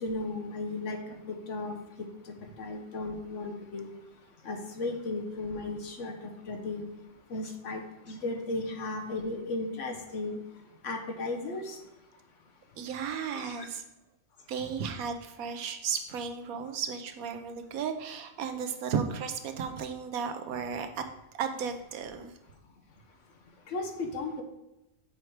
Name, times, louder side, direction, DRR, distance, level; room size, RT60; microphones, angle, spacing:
voice 1, 0.0-1.7 2.3-3.9 4.4-6.1 6.5-6.8 7.3-10.4 10.8-11.8 13.4-13.7 23.7-24.4, left 2 dB, 65° left, 4 dB, 1.2 m, -35 dB
voice 2, 12.8-13.8 14.5-21.0 21.3-22.3, right 6 dB, 85° right, 7 dB, 1.2 m, -34 dB
6.7 x 4.6 x 4.7 m, 0.94 s
omnidirectional pair, 1.4 m